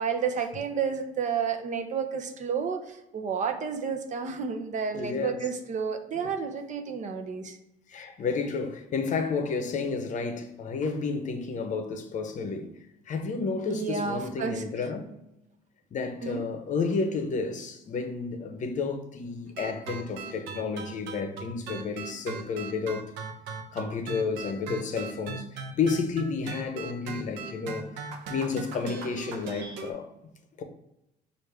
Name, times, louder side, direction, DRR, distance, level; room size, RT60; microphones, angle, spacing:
voice 1, 0.0-7.6 13.7-14.6 16.2-16.4, right 6 dB, 45° right, 0.7 m, -31 dB
voice 2, 4.9-5.5 6.1-6.3 7.9-12.7 13.1-15.1 15.9-23.1 23.7-27.9 28.3-30.1 30.6-30.7, left 4 dB, 45° left, 0.7 m, -31 dB
sound 1, 19.5-29.9, right 4 dB, 90° right, 0.7 m, -38 dB
6.3 x 2.5 x 3.3 m
cardioid pair, 110°, 17 cm